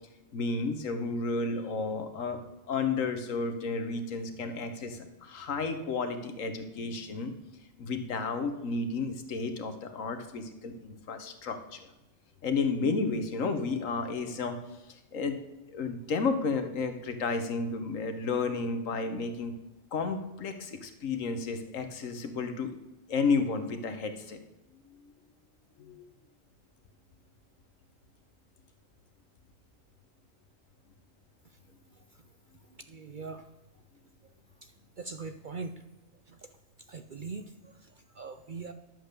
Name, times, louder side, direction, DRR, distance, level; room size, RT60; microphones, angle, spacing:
voice 1, 0.3-2.4 2.7-7.3 7.8-11.8 12.4-14.6 15.1-15.4 15.7-19.5 19.9-22.7 23.1-24.4 25.8-26.0, left 4 dB, 75° left, 8 dB, 1.5 m, -32 dB
voice 2, 32.9-33.5 34.6-35.8 36.3-36.4 36.9-38.7, right 4 dB, 55° right, 8 dB, 0.6 m, -42 dB
11.0 x 7.7 x 6.7 m, 0.99 s
omnidirectional pair, 1.4 m